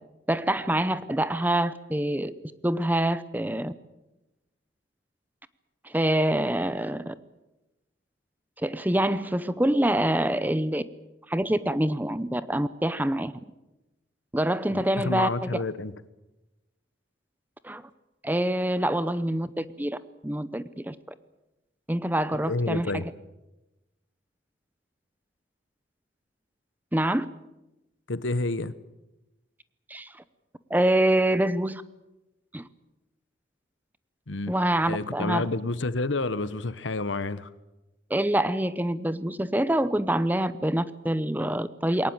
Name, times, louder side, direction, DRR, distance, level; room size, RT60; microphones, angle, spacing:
voice 1, 0.3-2.3 2.6-3.7 5.8-7.1 8.6-10.8 11.3-13.3 14.3-15.5 17.6-17.8 18.2-20.0 20.2-21.0 21.9-23.0 26.9-27.3 29.9-30.1 30.7-31.8 32.5-32.7 34.5-35.4 38.1-42.1, right 1 dB, 10° right, 0.7 m, -25 dB
voice 2, 14.7-15.9 22.4-23.1 28.1-28.7 34.3-34.5 34.9-37.5, left 3 dB, 80° left, 1.1 m, -29 dB
21.5 x 18.5 x 8.9 m
head